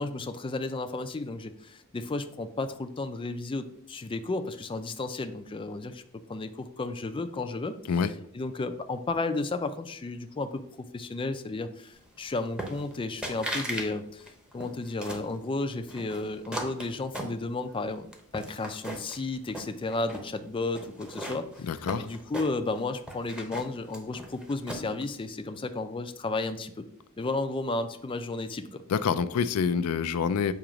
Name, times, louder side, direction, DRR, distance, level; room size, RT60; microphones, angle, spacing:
voice 1, 0.0-6.0 6.3-7.7 8.3-18.1 18.3-21.7 22.0-26.8 27.2-28.8, left 3 dB, 25° left, 9 dB, 0.4 m, -33 dB
sound 1, 12.6-13.0 13.2-13.9 14.2-15.3 15.9-17.8 18.1-19.2 19.5-20.3 20.7-22.8 23.1-25.0, right 1 dB, 5° right, 0.8 m, -37 dB
voice 2, 21.6-22.1 28.9-30.5, left 6 dB, 85° left, 12 dB, 0.4 m, -26 dB
7.3 x 2.9 x 5.0 m, 0.67 s
head